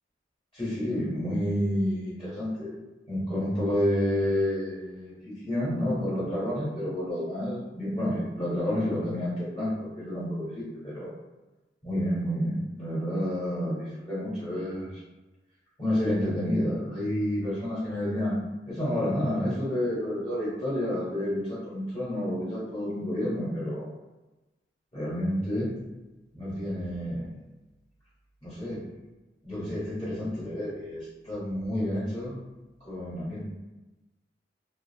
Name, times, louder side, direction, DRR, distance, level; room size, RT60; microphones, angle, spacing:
voice 1, 0.5-2.7 3.1-11.1 11.8-15.0 15.8-18.3 18.6-23.9 24.9-25.7 26.3-27.3 28.4-28.8 29.4-32.4 32.8-33.4, left 1 dB, 30° left, -11 dB, 0.9 m, -29 dB
2.3 x 2.3 x 2.7 m, 1.1 s
head